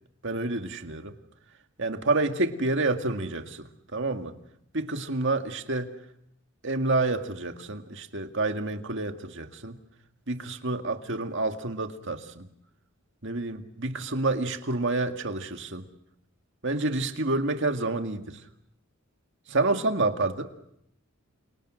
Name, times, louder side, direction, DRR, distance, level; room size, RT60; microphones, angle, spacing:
voice 1, 0.2-1.2 1.8-4.4 4.7-5.9 6.6-9.8 10.3-12.5 13.2-15.9 16.6-18.4 19.5-20.5, right 2 dB, 55° right, 6 dB, 2.1 m, -28 dB
30.0 x 27.0 x 6.4 m, 0.76 s
head